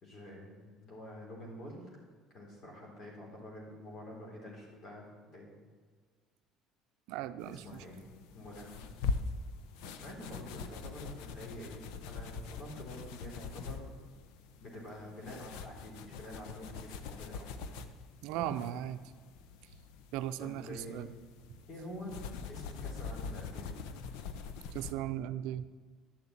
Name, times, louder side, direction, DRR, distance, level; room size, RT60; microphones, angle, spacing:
voice 1, 0.0-2.0 2.3-5.6 7.4-8.0 8.3-8.9 10.0-13.9 14.6-17.8 18.3-18.7 20.4-21.1 21.7-22.1 22.5-23.7, equal, 45° left, -2 dB, 3.6 m, -47 dB
voice 2, 7.1-7.8 18.2-19.0 20.1-21.1 24.7-25.7, right 12 dB, 80° right, 12 dB, 0.5 m, -37 dB
sound 1, 7.4-24.9, left 5 dB, 80° left, 0.8 m, -43 dB
11.0 x 7.0 x 8.6 m, 1.6 s
cardioid pair, 120°, 0 cm